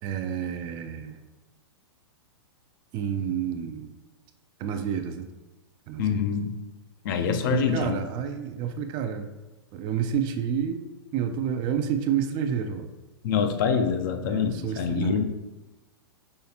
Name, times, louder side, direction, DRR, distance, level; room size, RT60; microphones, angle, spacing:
voice 1, 0.0-1.2 2.9-3.9 4.6-5.3 5.9-6.2 7.5-9.3 9.7-10.9 11.1-12.9 14.3-15.2, right 8 dB, 30° right, 7 dB, 0.4 m, -29 dB
voice 2, 6.0-6.5 7.0-8.0 13.2-15.2, left 7 dB, 50° left, 6 dB, 0.5 m, -25 dB
5.6 x 3.1 x 2.9 m, 1.1 s
figure-of-eight pair, 110°, 14 cm